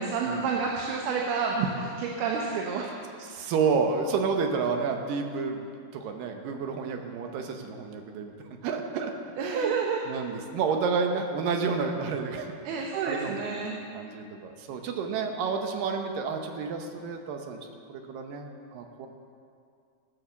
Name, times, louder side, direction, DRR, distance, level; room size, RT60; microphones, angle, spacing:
voice 1, 0.0-2.9 9.4-10.0 12.6-13.8, right 5 dB, 85° right, 0 dB, 3.0 m, -29 dB
voice 2, 3.2-8.3 8.6-9.1 9.4-13.7 13.9-17.6 17.9-19.1, right 5 dB, 70° right, 4 dB, 2.6 m, -30 dB
18.5 x 7.1 x 7.1 m, 2.3 s
omnidirectional pair, 4.4 m